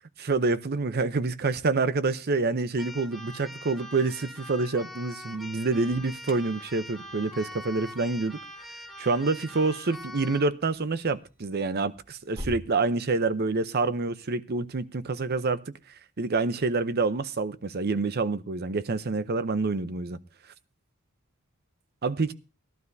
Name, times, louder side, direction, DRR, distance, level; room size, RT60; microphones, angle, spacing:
voice 1, 0.2-8.4 9.0-15.6 16.2-20.2 22.0-22.3, right 3 dB, 50° right, 0.7 m, -27 dB
Keyboard (musical), 2.8-10.5, left 1 dB, ahead, 1.2 m, -43 dB
Alarm, 5.8-12.7, equal, 25° right, 1.7 m, -47 dB
19.0 x 12.0 x 2.7 m
head